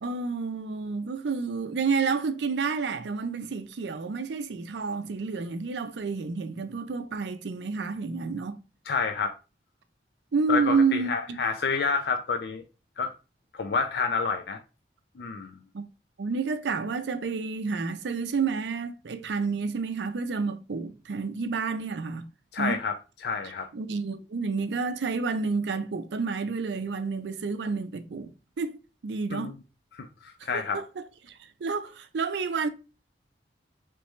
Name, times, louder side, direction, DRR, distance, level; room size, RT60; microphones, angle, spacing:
voice 1, 0.0-8.6 10.3-11.4 15.7-15.8 16.2-22.3 22.6-22.8 23.7-28.3 28.6-28.7 29.0-29.5 30.5-32.7, right 4 dB, 80° right, 0.5 m, -29 dB
voice 2, 8.9-9.4 10.5-12.6 13.0-13.1 13.5-14.6 15.2-15.5 22.5-22.9 23.2-23.7 29.3-29.6 29.9-30.8, left 5 dB, 65° left, 0.4 m, -29 dB
3.3 x 3.1 x 3.1 m
head